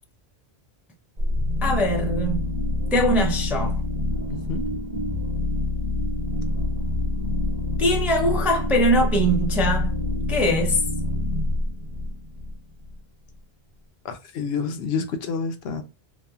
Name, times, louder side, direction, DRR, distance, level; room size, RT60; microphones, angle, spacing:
sound 1, 1.2-12.9, left 2 dB, 45° right, 0.8 m, -26 dB
voice 1, 1.6-2.6 2.9-3.8 7.8-10.0 10.3-10.9, equal, 5° right, 0.3 m, -22 dB
voice 2, 4.3-4.6 14.0-15.8, left 5 dB, 75° left, 0.8 m, -28 dB
2.8 x 2.3 x 2.3 m
omnidirectional pair, 1.1 m